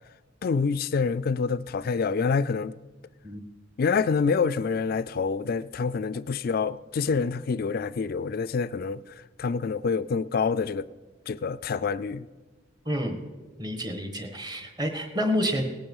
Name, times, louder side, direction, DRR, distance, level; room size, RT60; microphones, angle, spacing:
voice 1, 0.4-2.8 3.8-10.9 11.3-12.3, left 5 dB, 50° left, 0.3 m, -27 dB
voice 2, 12.8-13.2 13.6-15.6, equal, 20° right, 1.4 m, -29 dB
18.0 x 8.8 x 5.4 m
head